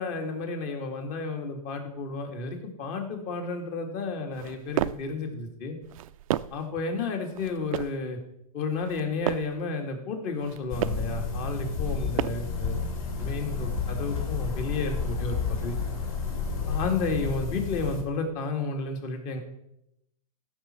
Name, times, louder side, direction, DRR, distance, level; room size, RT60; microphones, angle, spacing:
voice 1, 0.0-5.8 6.5-8.2 8.5-12.8 13.2-15.8 16.7-19.4, left 3 dB, 40° left, 4 dB, 2.2 m, -32 dB
sound 1, 4.3-5.1 5.8-6.7 7.3-8.0 8.7-9.6 10.3-11.1 11.8-12.6, right 13 dB, 60° right, 0.4 m, -33 dB
sound 2, 10.7-18.0, left 5 dB, 60° left, 2.8 m, -31 dB
15.0 x 6.3 x 4.5 m, 0.83 s
hypercardioid pair, 125°, 19 cm